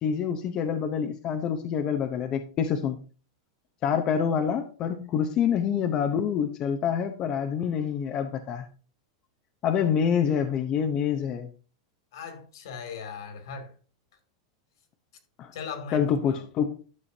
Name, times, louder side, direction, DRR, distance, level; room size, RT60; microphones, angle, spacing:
voice 1, 0.0-3.0 3.8-8.7 9.6-11.5 15.4-15.5 15.9-16.7, left 7 dB, 30° left, 0.8 m, -26 dB
voice 2, 12.1-13.7 15.5-16.4, left 5 dB, 70° left, 2.5 m, -39 dB
11.5 x 6.9 x 2.8 m
supercardioid pair, 155°, 2 cm